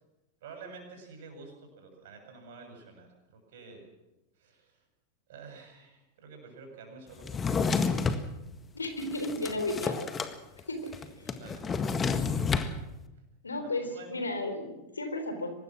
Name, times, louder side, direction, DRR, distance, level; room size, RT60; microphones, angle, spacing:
voice 1, 0.4-3.8 4.4-4.8 5.3-7.6 10.9-11.1 11.4-11.9 13.6-14.1, right 4 dB, 55° right, 4 dB, 7.5 m, -49 dB
Drawer open or close, 7.2-8.2 8.8-10.3 10.6-10.7 10.9-12.7, left 5 dB, 20° left, 1.8 m, -29 dB
voice 2, 8.7-10.1 10.7-10.9 13.4-15.5, left 2 dB, 75° left, 8 dB, 3.7 m, -33 dB
24.5 x 20.0 x 6.3 m, 0.98 s
figure-of-eight pair, 90°, 0 cm